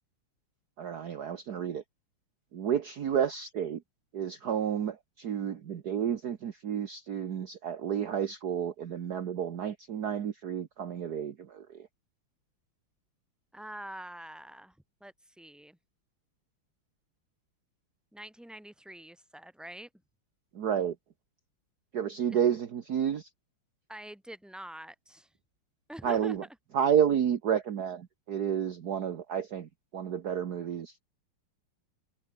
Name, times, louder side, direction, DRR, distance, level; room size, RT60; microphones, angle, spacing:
voice 1, 0.8-1.8 2.5-3.8 4.1-11.9 20.5-20.9 21.9-23.3 26.0-26.4 26.7-31.0, right 8 dB, 55° right, 1.6 m, -31 dB
voice 2, 13.5-15.8 18.1-19.9 22.3-22.4 23.9-25.3 25.9-26.4, right 1 dB, ahead, 3.4 m, -45 dB
omnidirectional pair, 2.3 m